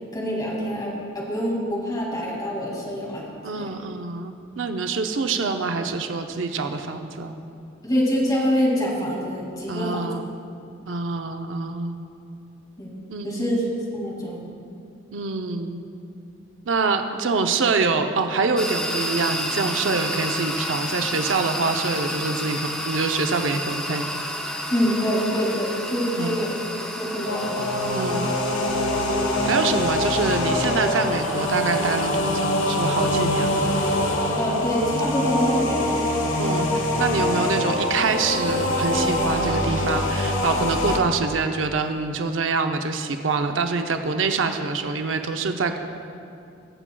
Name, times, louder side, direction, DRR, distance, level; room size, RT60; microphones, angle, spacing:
voice 1, 0.1-3.7 7.8-10.1 12.8-14.4 24.7-27.7 34.4-36.0, equal, 20° left, -4 dB, 2.2 m, -26 dB
voice 2, 3.4-7.4 9.7-10.3 10.9-12.0 13.1-13.6 15.1-15.8 16.7-24.1 26.2-26.4 27.9-28.3 29.4-33.7 36.4-45.8, right 4 dB, 75° right, 6 dB, 0.6 m, -25 dB
sound 1, 18.6-35.2, equal, 5° left, 0.7 m, -32 dB
sound 2, 27.3-41.0, left 1 dB, 85° left, 1.1 m, -24 dB
21.5 x 7.3 x 2.3 m, 2.5 s
head